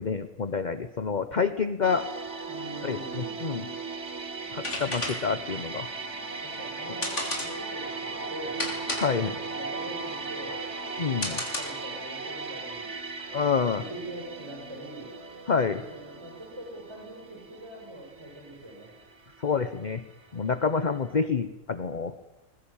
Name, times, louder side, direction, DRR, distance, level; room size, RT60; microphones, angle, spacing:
voice 1, 0.0-2.1 2.8-3.7 4.5-5.9 9.0-9.4 11.0-11.4 13.3-13.8 15.5-15.8 19.4-20.0 20.3-22.1, left 5 dB, 40° left, 11 dB, 1.0 m, -28 dB
sound 1, 1.8-20.6 20.9-21.1, right 4 dB, 60° right, 2.2 m, -38 dB
voice 2, 2.5-3.4 6.4-8.6 9.2-10.6 11.0-12.9 13.4-15.1 15.7-18.9, right 1 dB, 20° right, -2 dB, 6.9 m, -43 dB
sound 2, 4.4-12.0, left 2 dB, 65° left, 4.5 m, -35 dB
23.0 x 21.5 x 8.9 m, 0.97 s
omnidirectional pair, 1.4 m